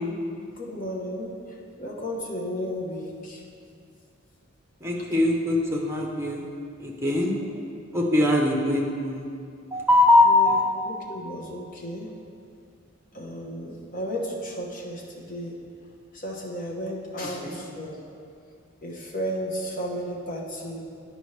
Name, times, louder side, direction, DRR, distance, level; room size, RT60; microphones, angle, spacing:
voice 1, 0.6-1.3 1.8-3.4 5.0-5.1 10.3-10.6 10.8-12.1 13.1-15.6 16.1-18.0 18.8-20.8, equal, 40° left, -2 dB, 1.0 m, -33 dB
voice 2, 4.8-6.4 6.8-7.3 7.9-9.3 9.7-10.6 17.4-17.6, left 2 dB, 10° right, -1 dB, 0.8 m, -21 dB
9.8 x 5.2 x 3.2 m, 2.3 s
head